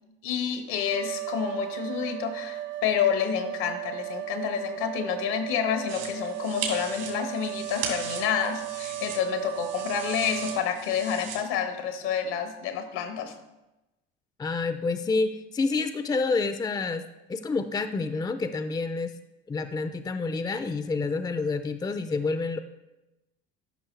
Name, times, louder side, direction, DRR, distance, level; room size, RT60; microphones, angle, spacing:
voice 1, 0.2-13.3, left 8 dB, 75° left, 7 dB, 1.3 m, -29 dB
sound 1, 0.9-10.7, right 17 dB, 40° right, 0.4 m, -36 dB
sound 2, 5.9-11.4, right 6 dB, 80° right, 2.7 m, -38 dB
voice 2, 14.4-17.0 17.3-19.1 19.5-22.6, left 3 dB, 15° left, 10 dB, 0.5 m, -28 dB
13.0 x 5.8 x 3.3 m, 0.99 s
hypercardioid pair, 80°, 29 cm